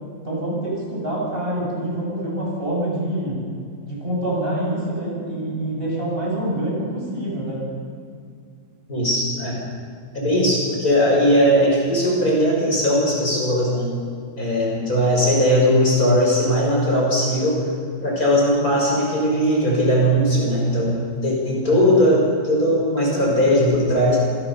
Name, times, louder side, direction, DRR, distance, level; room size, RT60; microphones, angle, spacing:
voice 1, 0.2-3.4 3.8-7.6 21.6-22.0, right 1 dB, 30° right, -4 dB, 8.0 m, -26 dB
voice 2, 8.9-9.6 10.1-14.0 14.4-17.6 18.0-24.2, equal, 45° left, -3 dB, 6.7 m, -19 dB
26.5 x 21.0 x 5.8 m, 2.2 s
omnidirectional pair, 2.1 m